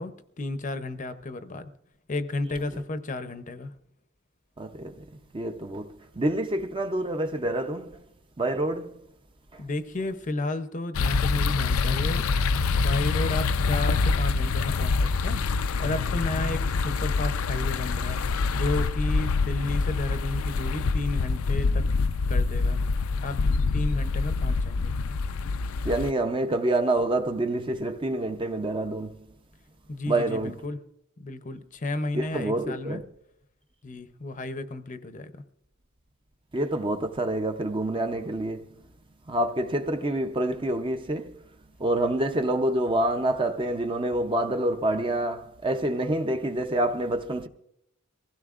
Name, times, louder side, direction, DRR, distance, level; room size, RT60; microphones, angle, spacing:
voice 1, 0.0-1.7 2.1-3.7 9.6-12.3 12.7-15.4 15.8-18.2 18.5-21.9 22.3-22.8 23.2-23.4 23.7-24.9 29.9-30.8 31.2-33.0 33.8-35.4, left 2 dB, 35° left, 0.6 m, -32 dB
voice 2, 4.6-5.0 5.3-8.0 8.4-9.0 9.5-9.6 25.8-29.2 30.1-30.5 32.1-33.0 36.5-38.7 39.3-41.4 41.8-47.5, right 1 dB, 25° right, 0.6 m, -27 dB
sound 1, 10.9-26.1, left 4 dB, 85° left, 0.5 m, -25 dB
23.0 x 16.0 x 2.5 m
head